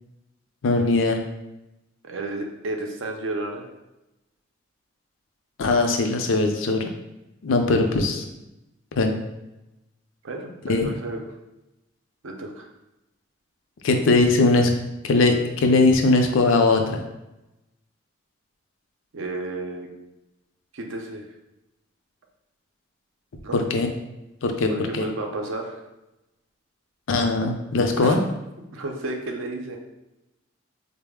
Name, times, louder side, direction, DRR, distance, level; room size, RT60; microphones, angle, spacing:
voice 1, 0.6-1.2 5.6-6.9 7.4-8.2 9.0-9.2 10.6-10.9 13.8-14.7 15.0-17.0 23.5-23.9 24.4-25.1 27.1-28.2, left 3 dB, 85° left, 4 dB, 0.5 m, -20 dB
voice 2, 2.0-3.7 7.7-8.0 10.2-11.3 12.2-12.7 19.1-19.9 20.7-21.3 23.4-23.6 24.7-25.8 28.0-28.2 28.7-29.8, right 2 dB, 85° right, 2 dB, 0.6 m, -32 dB
3.9 x 2.0 x 3.5 m, 0.94 s
head